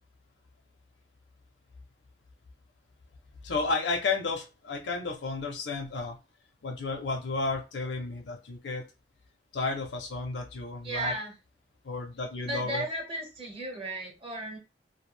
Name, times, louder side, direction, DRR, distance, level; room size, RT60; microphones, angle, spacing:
voice 1, 3.4-6.2 6.6-8.8 9.5-11.1 11.8-12.8, left 3 dB, 80° left, 1 dB, 0.6 m, -32 dB
voice 2, 10.8-11.3 12.5-14.6, right 1 dB, 30° right, 0 dB, 0.8 m, -34 dB
2.3 x 2.1 x 3.1 m, 0.29 s
head